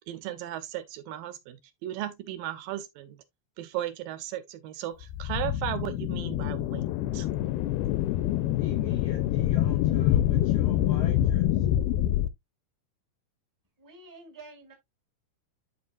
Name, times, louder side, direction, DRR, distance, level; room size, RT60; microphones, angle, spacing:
voice 1, 0.1-3.2 3.6-6.9 7.1-7.3, right 12 dB, 80° right, 2.2 m, -36 dB
sound 1, 5.0-12.3, left 12 dB, 90° left, 2.5 m, -26 dB
voice 2, 8.6-11.4, left 6 dB, 75° left, 1.5 m, -45 dB
voice 3, 13.8-14.7, right 3 dB, 15° right, 0.7 m, -48 dB
12.0 x 4.2 x 2.4 m
omnidirectional pair, 4.3 m